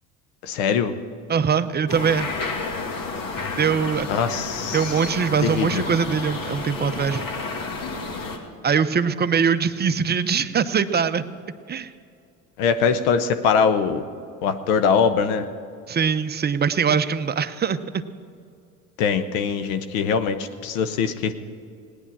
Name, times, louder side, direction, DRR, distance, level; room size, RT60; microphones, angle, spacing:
voice 1, 0.4-0.9 4.1-4.9 5.4-5.9 12.6-14.0 14.4-15.5 19.0-21.3, left 6 dB, 70° left, 9 dB, 1.1 m, -22 dB
voice 2, 1.3-2.3 3.6-4.2 4.7-7.2 8.6-11.2 11.7-11.9 15.9-18.0, right 6 dB, 25° right, 11 dB, 0.7 m, -22 dB
sound 1, 1.9-8.4, left 3 dB, 50° left, 2.4 m, -31 dB
17.5 x 10.0 x 7.3 m, 2.4 s
hypercardioid pair, 75°, 42 cm